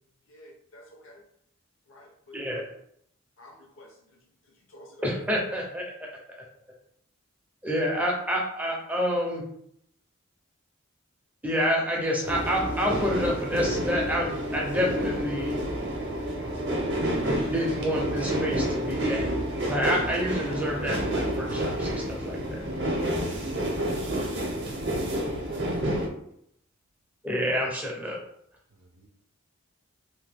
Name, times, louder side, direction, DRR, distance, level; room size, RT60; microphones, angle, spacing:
voice 1, 0.3-1.2 1.9-2.4 3.4-5.2, left 1 dB, 65° left, 0.8 m, -51 dB
voice 2, 5.0-6.1 7.6-9.4 11.4-15.6 17.2-19.3 19.7-22.6 27.2-28.2, equal, 5° right, 0.5 m, -28 dB
sound 1, 12.2-26.1, equal, 55° right, 0.7 m, -29 dB
voice 3, 23.4-23.9 24.8-25.8 28.7-29.1, right 2 dB, 90° right, 0.5 m, -43 dB
2.8 x 2.2 x 3.3 m
head